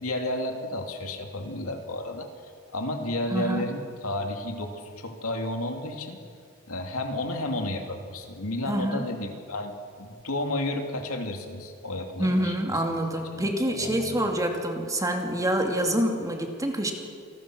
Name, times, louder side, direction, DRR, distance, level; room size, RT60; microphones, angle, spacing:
voice 1, 0.0-6.2 6.7-12.8 13.3-14.2, left 1 dB, 80° left, 4 dB, 2.8 m, -32 dB
voice 2, 3.3-3.7 8.7-9.1 12.2-16.9, right 1 dB, 15° right, 3 dB, 2.6 m, -26 dB
28.5 x 20.5 x 6.3 m, 2.3 s
head